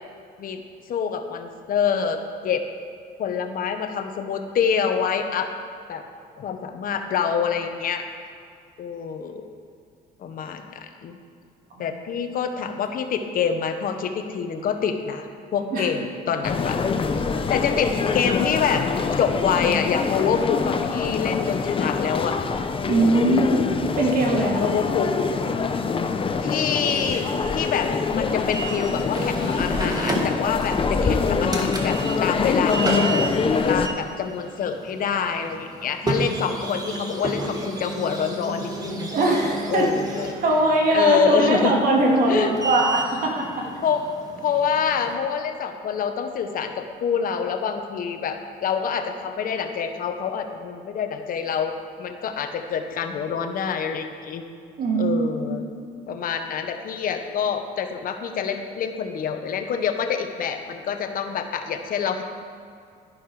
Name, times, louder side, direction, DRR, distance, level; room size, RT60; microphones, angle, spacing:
voice 1, 0.9-2.6 3.2-5.5 5.9-6.0 6.4-8.0 8.8-9.4 10.2-11.2 11.8-16.8 17.5-18.9 19.2-22.4 23.2-23.7 24.6-25.1 26.4-33.3 33.7-39.1 39.7-40.3 40.9-41.7 42.3-42.5 43.8-44.0 44.4-54.4 55.0-55.6 56.1-62.2, left 7 dB, 55° left, 6 dB, 1.1 m, -26 dB
sound 1, 16.4-33.9, left 5 dB, 30° left, 0.8 m, -25 dB
voice 2, 22.9-23.5 24.0-24.8 39.1-39.9 40.4-43.7 54.8-55.6, right 2 dB, 55° right, -1 dB, 2.7 m, -21 dB
sound 2, 26.8-45.1, right 2 dB, 20° right, 1.9 m, -32 dB
11.5 x 11.0 x 4.9 m, 2.4 s
cardioid pair, 110°, 17 cm